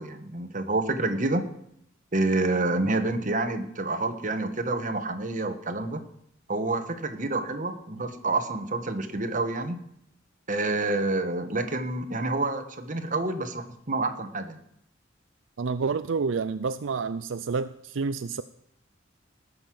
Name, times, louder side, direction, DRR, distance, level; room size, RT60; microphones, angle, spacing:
voice 1, 0.0-1.5 2.1-6.0 6.5-9.8 10.5-14.6, right 2 dB, 45° right, 7 dB, 1.6 m, -28 dB
voice 2, 15.6-18.4, right 5 dB, 80° right, 12 dB, 0.5 m, -29 dB
18.0 x 6.7 x 7.8 m, 0.73 s
head